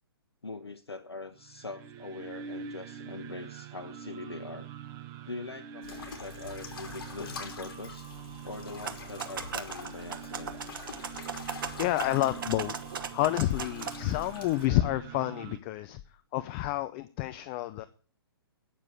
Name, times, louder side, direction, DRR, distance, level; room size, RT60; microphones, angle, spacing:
voice 1, 0.4-4.7 5.3-8.1 8.4-10.5, left 3 dB, 80° left, 6 dB, 1.1 m, -42 dB
sound 1, 1.3-15.6, right 7 dB, 25° right, 0.9 m, -45 dB
sound 2, 5.8-14.7, left 5 dB, 55° left, 3.1 m, -45 dB
sound 3, 8.7-13.9, right 7 dB, 55° right, 1.4 m, -38 dB
voice 2, 11.3-12.7 13.1-16.0 16.3-17.9, left 15 dB, 30° left, 12 dB, 0.6 m, -29 dB
9.5 x 7.0 x 8.5 m, 0.41 s
figure-of-eight pair, 125°, 13 cm